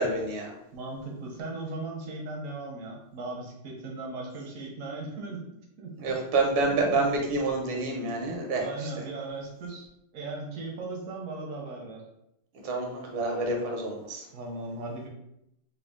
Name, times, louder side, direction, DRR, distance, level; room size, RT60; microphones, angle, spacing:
voice 1, 0.0-0.5 6.0-8.9 12.6-14.2, right 2 dB, 80° right, 1 dB, 1.5 m, -28 dB
voice 2, 0.7-6.2 6.7-7.0 8.6-12.1 14.3-15.1, right 2 dB, 60° right, -1 dB, 0.8 m, -38 dB
3.6 x 2.3 x 3.5 m, 0.81 s
omnidirectional pair, 2.3 m